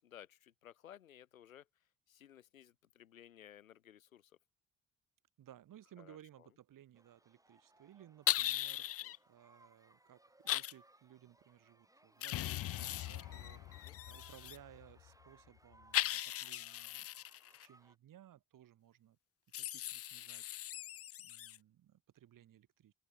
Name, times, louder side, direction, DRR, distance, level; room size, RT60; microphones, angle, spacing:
voice 1, 0.0-1.7 2.1-4.3 6.0-6.5 9.0-9.1 13.8-14.0, left 10 dB, 80° left, 4.4 m, -58 dB
voice 2, 5.4-19.2 19.5-20.6 21.2-22.9, right 12 dB, 50° right, 2.2 m, -60 dB
sound 1, 6.9-18.0, right 1 dB, 10° right, 3.0 m, -66 dB
sound 2, 8.3-9.2 10.5-10.7 12.2-14.6 15.9-17.7 19.5-21.6, left 13 dB, 35° left, 0.5 m, -39 dB
sound 3, 12.3-16.0, left 16 dB, 55° left, 1.1 m, -46 dB
open air
figure-of-eight pair, 45°, 40 cm